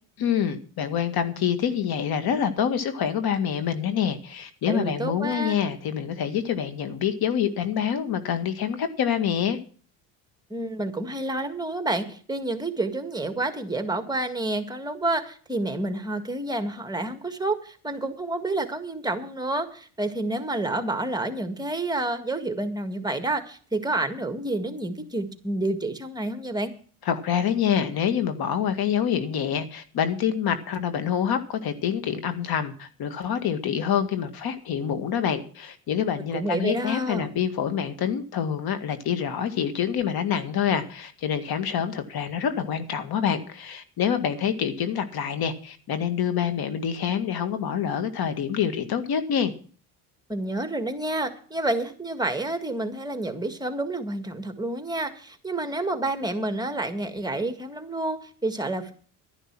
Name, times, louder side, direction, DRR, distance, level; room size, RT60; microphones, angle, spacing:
voice 1, 0.2-9.6 27.1-49.5, left 8 dB, 60° left, 9 dB, 1.9 m, -26 dB
voice 2, 4.7-5.6 10.5-26.7 36.3-37.3 50.3-58.9, right 2 dB, 10° right, 8 dB, 1.8 m, -29 dB
11.5 x 11.0 x 6.1 m, 0.43 s
supercardioid pair, 95°, 42 cm